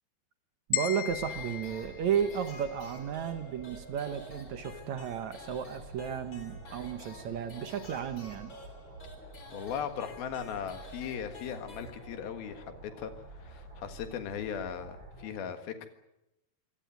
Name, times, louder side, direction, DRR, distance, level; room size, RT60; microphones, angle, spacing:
sound 1, 0.7-2.9, left 12 dB, 70° left, 2.8 m, -36 dB
voice 1, 0.7-8.5, right 8 dB, 65° right, 9 dB, 2.0 m, -33 dB
sound 2, 1.1-15.3, right 2 dB, 30° right, 7.4 m, -49 dB
sound 3, 1.3-12.4, left 2 dB, 25° left, 3.6 m, -51 dB
voice 2, 9.5-13.1 13.4-15.9, left 8 dB, 85° left, 8 dB, 3.5 m, -38 dB
24.0 x 17.5 x 9.2 m, 0.91 s
omnidirectional pair, 4.2 m